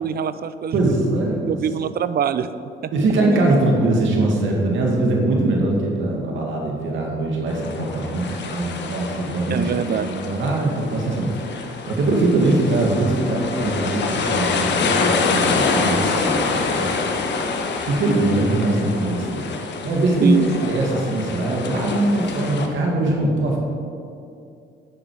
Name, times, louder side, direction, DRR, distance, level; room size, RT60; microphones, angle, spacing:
voice 1, 0.0-0.9 1.5-2.5 2.8-2.9 9.5-10.1 20.2-20.5, right 8 dB, 50° right, 14 dB, 0.6 m, -23 dB
voice 2, 0.7-1.5 2.9-16.9 17.9-19.4 19.8-20.4 20.7-23.6, right 2 dB, 75° right, -1 dB, 2.1 m, -22 dB
sound 1, 7.5-22.7, left 4 dB, 60° left, 1.3 m, -26 dB
10.0 x 9.5 x 4.8 m, 2.4 s
cardioid pair, 90°, 20 cm